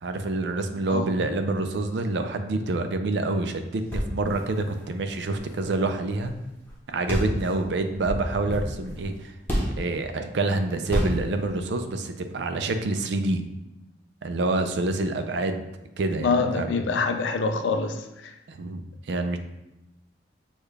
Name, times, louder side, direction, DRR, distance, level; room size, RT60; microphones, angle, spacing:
voice 1, 0.0-6.3 6.9-9.3 9.8-13.4 14.2-15.7 16.0-16.8 18.5-19.4, right 2 dB, 70° right, 7 dB, 0.4 m, -27 dB
sound 1, 3.8-6.4 6.6-6.7 7.1-9.9 10.9-11.4, equal, 10° left, 0.9 m, -30 dB
voice 2, 16.2-18.0, left 4 dB, 80° left, 7 dB, 0.4 m, -25 dB
6.3 x 2.3 x 3.3 m, 0.93 s
head